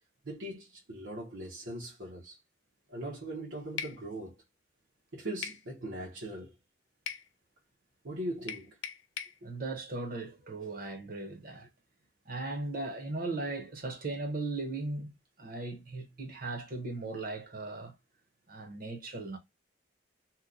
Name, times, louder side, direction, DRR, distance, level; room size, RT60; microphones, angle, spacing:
voice 1, 0.2-2.4 2.9-4.4 5.1-6.5 8.0-8.8 9.4-9.5, right 1 dB, 80° right, 1.0 m, -40 dB
sound 1, 3.8-4.0 5.4-5.6 7.1-7.3 8.5-9.4, left 8 dB, 85° left, 0.5 m, -39 dB
voice 2, 9.4-11.7 12.3-15.1 15.4-17.9 18.5-19.4, right 2 dB, 50° right, 0.9 m, -37 dB
2.9 x 2.2 x 3.7 m
head